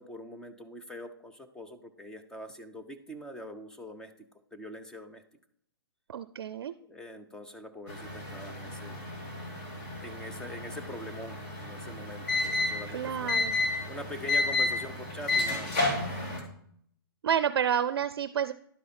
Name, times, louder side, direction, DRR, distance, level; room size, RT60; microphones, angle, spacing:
voice 1, 0.0-4.1 4.5-5.2 6.9-9.0 10.0-13.3 13.9-15.7, left 1 dB, 5° left, 6 dB, 0.5 m, -43 dB
voice 2, 6.1-6.7 12.9-13.6 17.2-18.5, right 8 dB, 75° right, 13 dB, 0.4 m, -29 dB
sound 1, 7.9-16.4, left 2 dB, 35° left, 2.1 m, -32 dB
11.0 x 4.8 x 4.3 m, 0.66 s
hypercardioid pair, 145°, 13 cm